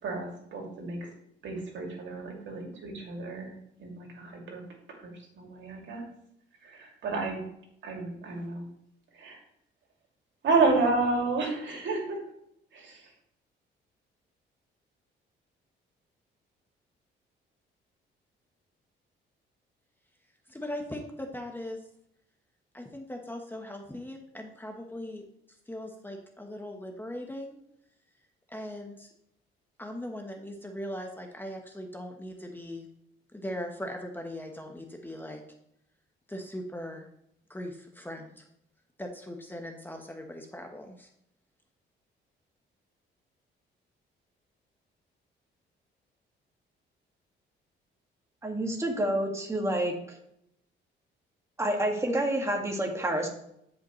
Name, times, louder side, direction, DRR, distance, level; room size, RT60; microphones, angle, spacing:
voice 1, 0.0-1.1 1.4-4.6 4.9-6.0 6.6-7.4 7.8-8.6 9.1-9.4 10.4-12.2 12.7-13.1, right 3 dB, 70° right, 0 dB, 2.6 m, -31 dB
voice 2, 20.5-21.8 22.7-25.2 25.7-27.5 28.5-29.1 29.8-32.9 33.3-35.4 36.3-37.1 37.5-38.4 39.0-41.1, left 1 dB, 10° left, 3 dB, 1.2 m, -39 dB
voice 3, 48.4-50.2 51.6-53.3, right 1 dB, 15° right, 0 dB, 2.0 m, -28 dB
13.0 x 5.3 x 3.2 m, 0.76 s
cardioid pair, 90°, 20 cm